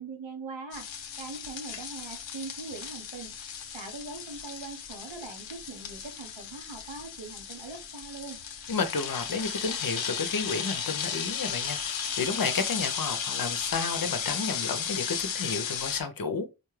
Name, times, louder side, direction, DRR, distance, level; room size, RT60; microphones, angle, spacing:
voice 1, 0.0-8.4, right 4 dB, 80° right, 1.1 m, -42 dB
sound 1, 0.7-16.0, left 7 dB, 85° left, 0.6 m, -35 dB
voice 2, 8.7-16.5, left 4 dB, 50° left, 0.7 m, -31 dB
4.3 x 2.2 x 3.1 m
cardioid pair, 45°, 44 cm